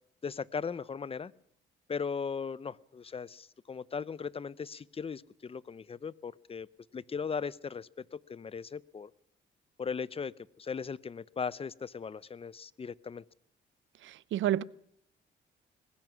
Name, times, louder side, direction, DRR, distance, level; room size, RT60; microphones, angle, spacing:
voice 1, 0.2-1.3 1.9-6.7 6.9-9.1 9.8-13.2, left 5 dB, 30° left, 0.7 m, -38 dB
voice 2, 14.0-14.6, right 12 dB, 75° right, 0.7 m, -30 dB
21.0 x 20.0 x 6.2 m
cardioid pair, 90°, 20 cm